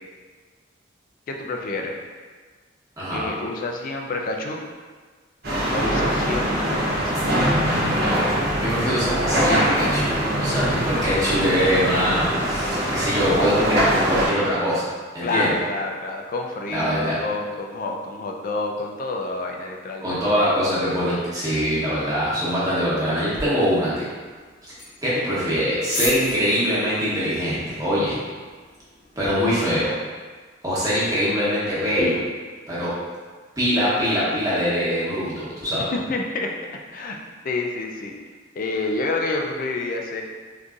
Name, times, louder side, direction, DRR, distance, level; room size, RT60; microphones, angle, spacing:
voice 1, 1.3-2.0 3.1-4.6 5.7-7.1 15.2-20.2 35.9-36.5 36.9-37.2 37.4-38.1 38.6-40.2, left 2 dB, 45° left, 1 dB, 0.3 m, -28 dB
voice 2, 3.0-3.3 8.6-10.1 10.4-14.9 15.1-15.5 16.7-17.2 20.0-24.0 25.0-28.2 29.2-29.9 30.6-32.2 32.7-32.9 33.6-35.9, equal, 20° right, -9 dB, 1.0 m, -23 dB
sound 1, 5.4-14.3, equal, 55° right, 0.9 m, -23 dB
sound 2, 23.3-29.3, left 2 dB, 85° left, 1.1 m, -37 dB
3.7 x 2.6 x 2.4 m, 1.5 s
head